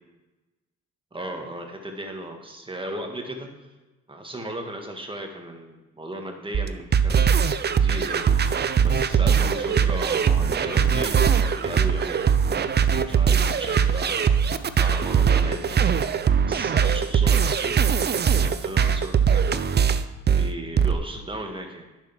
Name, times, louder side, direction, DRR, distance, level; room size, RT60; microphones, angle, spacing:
voice 1, 1.1-3.5 4.1-12.3 13.0-15.9 16.5-17.8 18.3-19.6 20.3-21.9, right 1 dB, 15° right, 3 dB, 1.8 m, -36 dB
sound 1, 6.5-20.9, right 7 dB, 35° right, 0.6 m, -21 dB
10.0 x 6.8 x 5.9 m, 1.1 s
cardioid pair, 90°, 30 cm